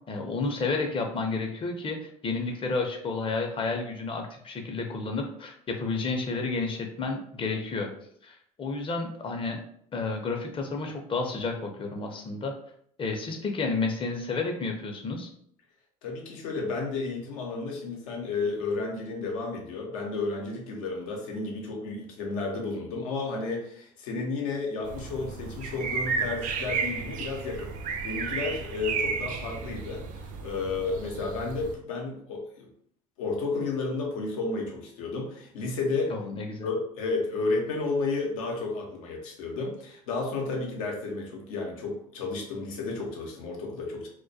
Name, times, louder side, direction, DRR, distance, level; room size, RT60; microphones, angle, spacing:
voice 1, 0.1-7.9 8.2-9.6 9.9-12.5 13.0-15.3 36.1-36.7, left 3 dB, 30° left, 3 dB, 0.5 m, -31 dB
voice 2, 16.0-32.6 33.2-36.2 36.6-44.1, left 3 dB, 85° left, 0 dB, 0.7 m, -32 dB
sound 1, 24.8-31.7, right 5 dB, 50° right, 0.4 m, -33 dB
2.2 x 2.1 x 2.6 m, 0.67 s
supercardioid pair, 80°, 17 cm